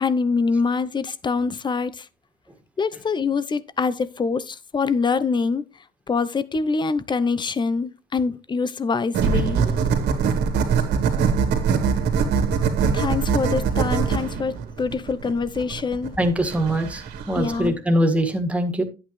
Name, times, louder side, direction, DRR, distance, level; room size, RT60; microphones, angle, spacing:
voice 1, 0.0-2.1 2.8-5.6 6.1-9.6 12.9-16.2 17.3-17.8, left 4 dB, 25° left, 0.8 m, -24 dB
sound 1, 9.1-17.7, right 6 dB, 80° right, 2.3 m, -23 dB
voice 2, 16.2-18.8, equal, 5° right, 2.0 m, -22 dB
10.5 x 8.7 x 3.2 m
cardioid pair, 110°, 17 cm